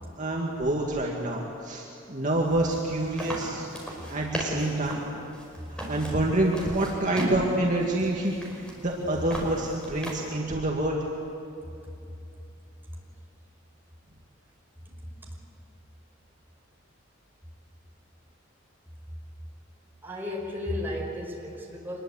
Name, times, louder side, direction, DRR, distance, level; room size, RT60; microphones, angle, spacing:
voice 1, 0.2-3.7 4.1-5.0 5.7-11.0, right 1 dB, 40° right, -2 dB, 2.2 m, -27 dB
sound 1, 2.2-10.4, equal, 5° left, 5.3 m, -37 dB
voice 2, 20.0-22.0, left 1 dB, 10° right, -2 dB, 5.3 m, -34 dB
26.0 x 21.5 x 8.4 m, 2.8 s
head